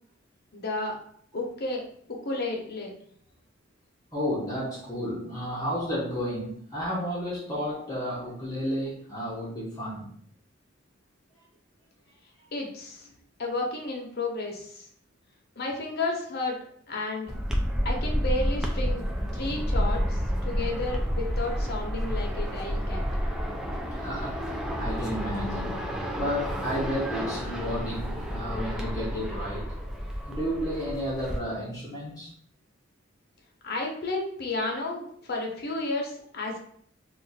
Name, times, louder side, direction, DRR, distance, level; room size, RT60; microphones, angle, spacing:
voice 1, 0.5-0.9 1.3-1.8 2.1-2.9 12.5-13.1 13.4-14.9 15.6-16.6 16.9-17.3 17.8-19.0 19.3-23.1 33.6-36.6, left 2 dB, 50° left, 0 dB, 0.7 m, -32 dB
voice 2, 4.1-10.1 23.9-24.4 24.8-29.7 30.3-32.3, equal, 20° left, -6 dB, 0.7 m, -32 dB
sound 1, 17.3-31.4, equal, 5° right, 0.3 m, -30 dB
2.5 x 2.4 x 3.9 m, 0.63 s
head